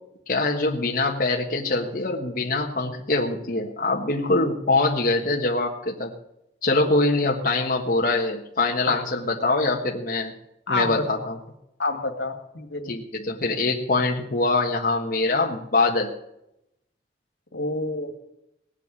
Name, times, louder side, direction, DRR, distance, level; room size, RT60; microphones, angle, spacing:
voice 1, 0.3-6.1 6.6-10.3 10.7-11.4 12.8-16.1, left 2 dB, 50° left, -1 dB, 1.4 m, -23 dB
voice 2, 10.7-11.0 11.8-13.0 17.5-18.1, left 2 dB, 80° left, 5 dB, 2.2 m, -28 dB
18.0 x 8.2 x 8.3 m, 0.82 s
head